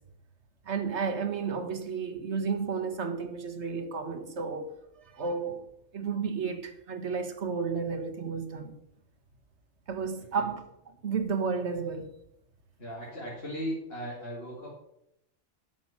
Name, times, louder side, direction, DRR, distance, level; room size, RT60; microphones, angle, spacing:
voice 1, 0.7-4.7 5.1-5.6 5.9-8.7 9.9-10.6 11.0-12.1, right 5 dB, 65° right, 1.6 m, -32 dB
voice 2, 12.8-14.7, equal, 50° left, 2.8 m, -37 dB
11.5 x 6.4 x 7.3 m
omnidirectional pair, 1.3 m